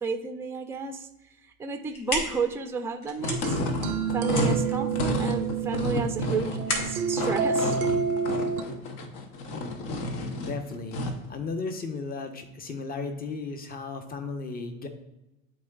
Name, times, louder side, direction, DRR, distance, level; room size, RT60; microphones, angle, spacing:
voice 1, 0.0-1.1 1.6-3.6 4.1-7.8, right 4 dB, 5° right, 5 dB, 0.6 m, -32 dB
sound 1, 1.6-8.5, left 1 dB, 80° left, 1.5 m, -36 dB
sound 2, 3.2-11.3, left 2 dB, 45° left, 1.0 m, -31 dB
sound 3, 3.4-8.6, right 6 dB, 85° right, 0.7 m, -29 dB
voice 2, 10.4-11.0 11.3-14.9, left 4 dB, 20° left, 6 dB, 1.0 m, -35 dB
11.5 x 3.9 x 2.4 m, 0.93 s
figure-of-eight pair, 80°, 44 cm